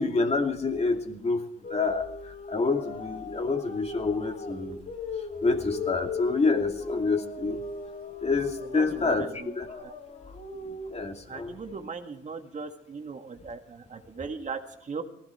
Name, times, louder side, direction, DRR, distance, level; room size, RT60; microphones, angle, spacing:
voice 1, 0.0-4.8 5.4-7.6 8.2-9.7 10.6-11.5, left 4 dB, 30° left, 4 dB, 2.6 m, -28 dB
sound 1, 1.6-10.9, left 3 dB, 50° left, 4.0 m, -38 dB
voice 2, 8.7-9.9 11.3-15.0, right 5 dB, 40° right, 5 dB, 1.9 m, -38 dB
19.0 x 16.0 x 4.4 m, 0.80 s
cardioid pair, 90°, 20 cm